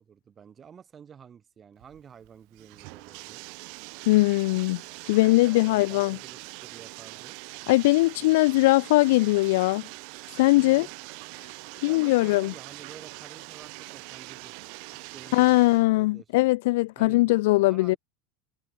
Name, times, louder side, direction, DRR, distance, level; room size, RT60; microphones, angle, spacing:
voice 1, 0.0-3.4 5.2-7.4 10.5-10.9 11.9-14.6 14.9-16.3 17.0-18.0, right 7 dB, 20° right, 6.2 m, -50 dB
Bathtub (filling or washing), 1.8-15.8, right 40 dB or more, 55° right, 1.8 m, -43 dB
voice 2, 4.1-4.8 5.1-6.2 7.7-9.8 10.4-10.9 11.8-12.5 15.3-18.0, left 20 dB, 70° left, 0.8 m, -21 dB
supercardioid pair, 155°, 0 cm